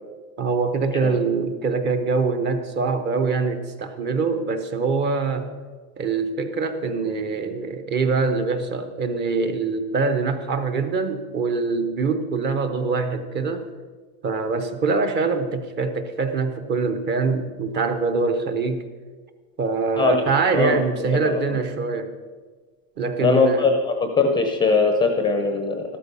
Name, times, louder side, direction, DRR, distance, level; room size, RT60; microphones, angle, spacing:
voice 1, 0.4-5.5 6.0-13.7 14.2-18.8 19.6-22.1 23.0-23.7, right 4 dB, 25° right, 7 dB, 0.8 m, -24 dB
voice 2, 23.2-25.8, left 4 dB, 10° left, 5 dB, 0.6 m, -20 dB
14.0 x 12.5 x 5.4 m, 1.4 s
supercardioid pair, 170°, 43 cm